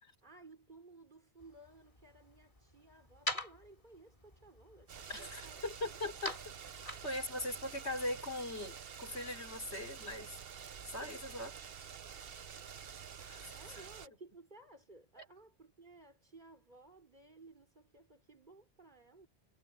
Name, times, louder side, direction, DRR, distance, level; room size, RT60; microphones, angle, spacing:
voice 1, 0.2-6.0 13.5-19.3, right 2 dB, 45° right, 4.7 m, -58 dB
sound 1, 1.4-7.8, equal, 30° left, 3.8 m, -46 dB
sound 2, 4.9-14.1, right 7 dB, 65° right, 1.1 m, -49 dB
voice 2, 5.1-6.4 7.0-10.4 10.9-11.6 13.2-13.9 15.2-15.3, left 1 dB, 85° left, 4.3 m, -40 dB
omnidirectional pair, 1.1 m